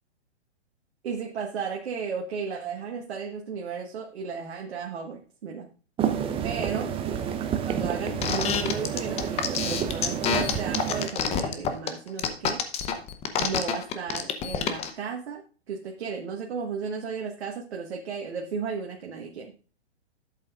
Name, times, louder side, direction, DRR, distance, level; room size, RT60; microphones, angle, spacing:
voice 1, 1.0-5.7 6.4-6.9 7.6-12.6 13.4-15.4 15.7-19.5, right 6 dB, 70° right, 1 dB, 1.5 m, -34 dB
sound 1, 6.0-11.1, right 8 dB, 15° right, 0.7 m, -29 dB
sound 2, 8.2-14.9, left 8 dB, 20° left, 0.7 m, -27 dB
11.5 x 7.8 x 2.4 m, 0.37 s
hypercardioid pair, 125°, 33 cm